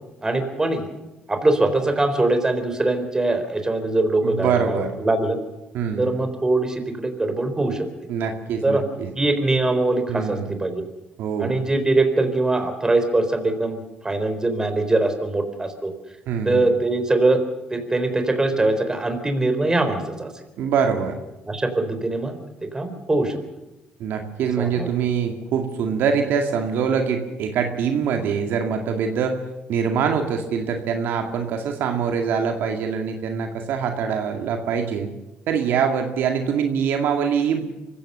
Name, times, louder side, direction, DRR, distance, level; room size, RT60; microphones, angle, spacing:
voice 1, 0.2-0.9 1.3-5.4 6.0-7.9 8.6-8.8 9.2-10.7 11.4-13.8 14.0-15.9 16.4-17.4 17.7-20.3 21.5-22.4 22.7-23.4 24.6-24.9, right 2 dB, 20° right, 7 dB, 3.9 m, -22 dB
voice 2, 4.2-4.9 5.7-6.1 8.1-9.1 10.1-10.5 11.2-11.5 16.3-16.7 20.6-21.2 24.0-29.4 29.7-35.1 35.5-37.7, right 6 dB, 75° right, 4 dB, 2.2 m, -24 dB
24.5 x 15.5 x 6.9 m, 1.0 s
cardioid pair, 80°, 3 cm